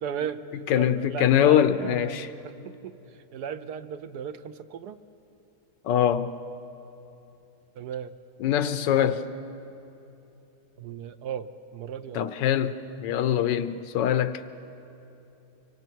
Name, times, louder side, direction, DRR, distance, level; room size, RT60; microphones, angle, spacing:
voice 1, 0.0-5.0 7.8-8.1 10.8-12.3, right 8 dB, 70° right, 11 dB, 1.2 m, -36 dB
voice 2, 0.7-2.3 5.8-6.3 8.4-9.2 12.1-14.4, left 10 dB, 85° left, 12 dB, 1.4 m, -23 dB
24.5 x 24.5 x 4.6 m, 3.0 s
omnidirectional pair, 1.9 m